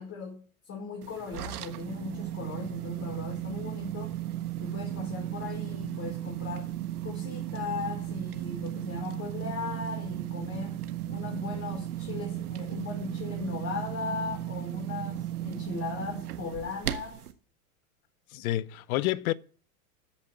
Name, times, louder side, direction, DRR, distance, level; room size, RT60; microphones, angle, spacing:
voice 1, 0.0-4.2 4.6-6.7 7.0-17.2, left 5 dB, 35° left, 4.9 m, -38 dB
sound 1, 1.0-17.3, right 13 dB, 85° right, 1.5 m, -35 dB
voice 2, 18.3-19.3, left 15 dB, 70° left, 0.8 m, -29 dB
14.0 x 5.4 x 8.7 m
hypercardioid pair, 110°, 44 cm